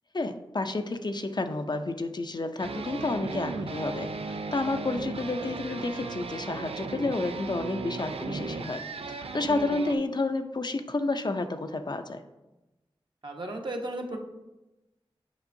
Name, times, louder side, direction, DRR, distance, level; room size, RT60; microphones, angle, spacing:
voice 1, 0.1-12.2, left 2 dB, 50° left, 7 dB, 0.5 m, -30 dB
sound 1, 2.6-10.0, right 4 dB, 85° right, 0.4 m, -36 dB
voice 2, 13.2-14.2, right 1 dB, 55° right, 2 dB, 0.9 m, -34 dB
7.1 x 5.2 x 2.6 m, 1.0 s
cardioid pair, 40°, 10 cm